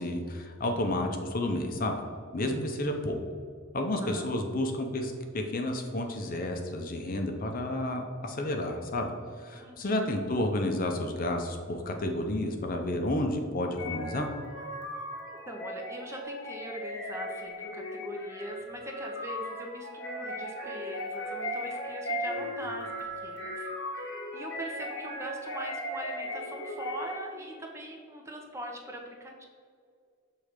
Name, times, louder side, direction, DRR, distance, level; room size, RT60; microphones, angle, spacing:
voice 1, 0.0-2.0 2.3-3.2 3.7-9.1 9.4-14.3, left 1 dB, 45° left, 4 dB, 0.6 m, -31 dB
voice 2, 4.0-4.3 9.5-10.1 15.3-23.7 24.3-29.4, equal, 15° right, 1 dB, 0.6 m, -41 dB
sound 1, 13.8-27.4, equal, 60° left, 1.2 m, -37 dB
6.5 x 3.2 x 5.0 m, 2.2 s
head